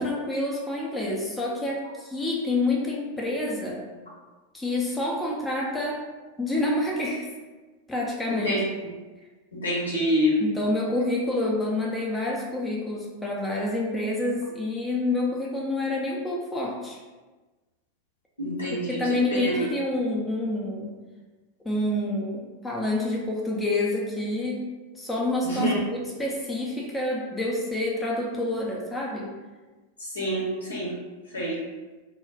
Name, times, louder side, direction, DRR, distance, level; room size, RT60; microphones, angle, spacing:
voice 1, 0.0-3.8 4.5-6.1 6.4-7.3 7.9-8.5 10.4-17.0 18.7-20.9 21.6-29.3, left 2 dB, 10° left, -3 dB, 0.5 m, -28 dB
voice 2, 8.3-8.6 9.6-10.3 18.4-19.0 19.4-19.5 25.4-25.8 30.1-30.4 30.7-30.9 31.3-31.6, equal, 75° left, -5 dB, 0.9 m, -26 dB
2.3 x 2.2 x 3.4 m, 1.2 s
figure-of-eight pair, 90°, 0 cm